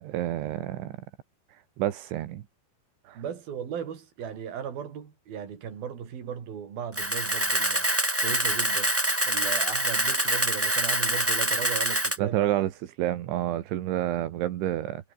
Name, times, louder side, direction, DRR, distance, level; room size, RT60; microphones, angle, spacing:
voice 1, 0.0-1.0 1.8-2.4 3.1-3.2 12.2-12.7 13.0-15.1, right 13 dB, 80° right, 4.0 m, -29 dB
voice 2, 3.2-7.9 8.2-8.9 9.2-12.7, right 8 dB, 55° right, 5.2 m, -36 dB
Camera, 6.9-12.2, right 1 dB, 5° right, 1.8 m, -25 dB
omnidirectional pair, 5.4 m